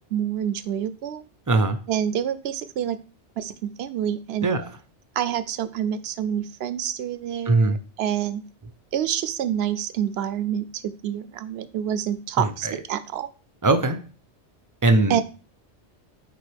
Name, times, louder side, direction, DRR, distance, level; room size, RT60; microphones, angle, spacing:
voice 1, 0.1-1.2 1.9-3.0 3.4-4.5 5.2-8.4 8.9-13.3 15.1-15.2, right 10 dB, 70° right, 14 dB, 0.8 m, -27 dB
voice 2, 1.5-1.8 4.4-4.6 7.5-7.8 12.4-12.7 13.6-14.0 14.8-15.2, right 2 dB, 25° right, 10 dB, 0.5 m, -20 dB
9.0 x 3.8 x 3.4 m, 0.35 s
omnidirectional pair, 1.2 m